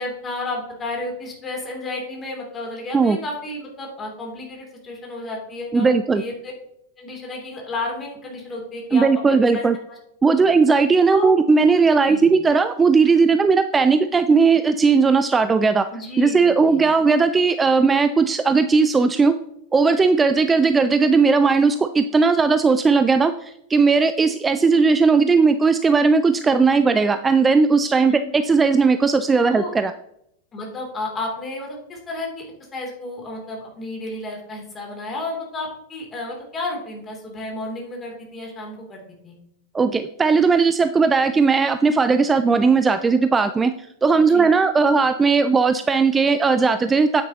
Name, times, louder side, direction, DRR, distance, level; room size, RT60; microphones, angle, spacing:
voice 1, 0.0-6.5 7.0-9.0 9.5-10.0 10.4-10.5 11.1-11.3 12.0-12.3 15.9-16.8 28.1-28.4 29.5-29.7 30.5-32.4 32.7-39.4 44.3-44.5, left 2 dB, 20° left, 0 dB, 3.0 m, -32 dB
voice 2, 5.7-6.2 8.9-9.8 10.2-15.9 16.2-19.3 19.7-29.9 39.7-43.7 44.0-47.2, right 4 dB, 15° right, 11 dB, 0.4 m, -17 dB
9.1 x 8.9 x 2.9 m, 0.76 s
figure-of-eight pair, 90°, 0 cm